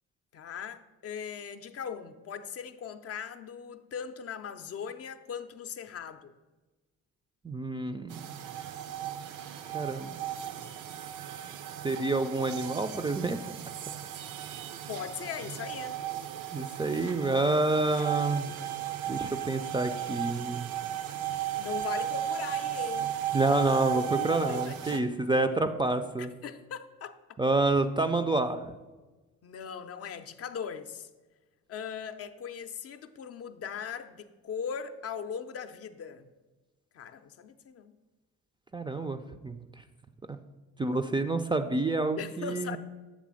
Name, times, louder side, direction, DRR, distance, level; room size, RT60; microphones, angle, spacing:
voice 1, 0.3-6.3 14.7-16.0 21.6-23.2 23.9-25.1 26.2-27.2 29.4-31.1 31.7-36.3 36.9-37.9 42.2-42.8, left 7 dB, 50° left, 0.5 m, -39 dB
voice 2, 7.4-8.4 9.7-10.2 11.8-13.6 16.5-18.5 19.1-20.7 23.3-26.3 27.4-28.7 38.7-39.6 40.3-40.4 40.8-42.8, right 2 dB, 15° right, 0.3 m, -28 dB
sound 1, 8.1-25.0, right 11 dB, 80° right, 0.5 m, -35 dB
7.6 x 3.3 x 6.2 m
cardioid pair, 90°, 30 cm